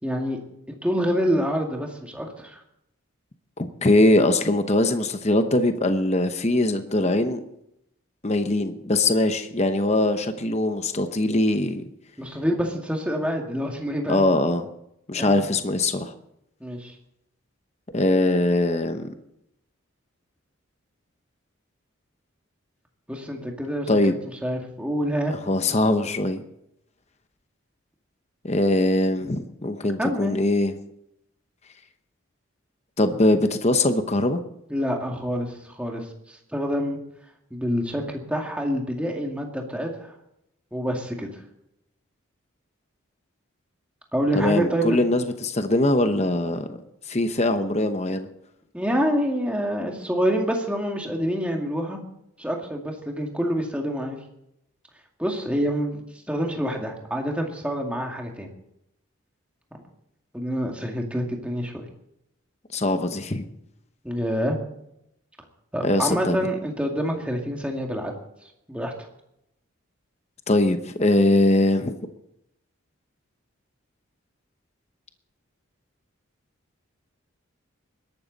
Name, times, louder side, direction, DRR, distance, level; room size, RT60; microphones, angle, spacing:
voice 1, 0.0-0.4 0.8-2.6 12.2-14.2 15.2-15.4 16.6-16.9 23.1-24.1 24.4-25.3 30.0-30.4 34.7-37.0 37.5-40.1 40.7-41.4 44.1-45.0 48.7-52.0 52.4-54.2 55.2-58.5 60.3-61.7 64.0-64.6 65.7-68.1 68.7-68.9, equal, 5° right, 1 dB, 2.1 m, -27 dB
voice 2, 3.6-7.4 8.2-11.8 14.1-14.7 15.1-16.1 17.9-19.1 23.9-24.2 25.5-26.4 28.4-30.7 33.0-34.4 44.4-46.8 47.1-48.3 62.7-63.4 65.8-66.4 70.5-71.9, left 1 dB, 30° left, 8 dB, 0.9 m, -22 dB
21.5 x 12.5 x 4.1 m, 0.80 s
head